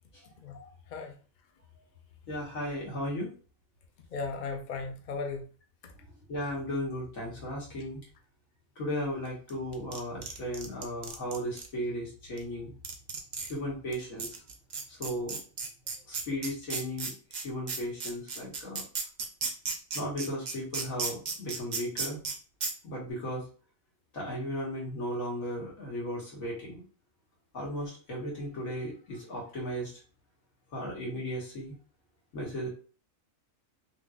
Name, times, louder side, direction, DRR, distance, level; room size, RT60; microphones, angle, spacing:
voice 1, 0.4-1.2 4.1-5.4 5.8-5.9, left 4 dB, 55° left, 3 dB, 0.5 m, -37 dB
voice 2, 2.3-3.3 6.3-8.0 8.8-12.7 13.4-14.4 14.9-15.4 16.1-18.8 19.9-22.2 22.8-23.4 24.1-26.8 27.5-29.9 30.7-31.7 32.3-32.7, equal, 75° left, -4 dB, 1.9 m, -35 dB
sound 1, 9.5-11.7 12.4-12.5 12.8-13.5 13.9-14.0 14.2-22.3 22.6-22.7, right 5 dB, 55° right, 0.5 m, -34 dB
3.7 x 3.0 x 2.4 m, 0.37 s
omnidirectional pair, 1.4 m